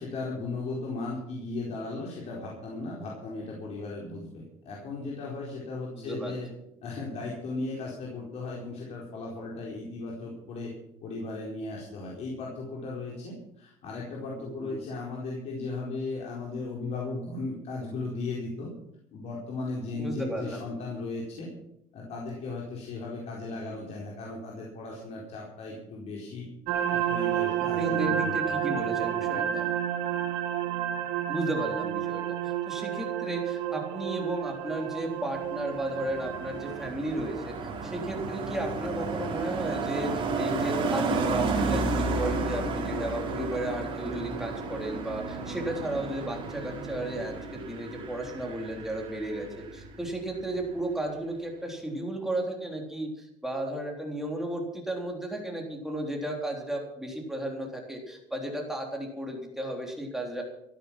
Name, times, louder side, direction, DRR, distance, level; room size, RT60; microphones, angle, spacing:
voice 1, 0.0-6.5 6.8-10.7 11.0-18.7 19.1-21.5 21.9-26.5 26.9-28.6 29.2-29.5, left 3 dB, 50° left, -3 dB, 4.5 m, -36 dB
voice 2, 6.0-6.4 14.4-14.8 19.9-20.6 27.6-29.7 31.3-60.4, right 1 dB, 5° right, 0 dB, 3.6 m, -34 dB
sound 1, 26.7-36.9, right 10 dB, 90° right, 1.9 m, -30 dB
Car passing by, 35.3-50.1 50.3-50.7, right 3 dB, 35° right, 4.4 m, -32 dB
15.0 x 12.0 x 6.0 m, 0.80 s
cardioid pair, 135°, 14 cm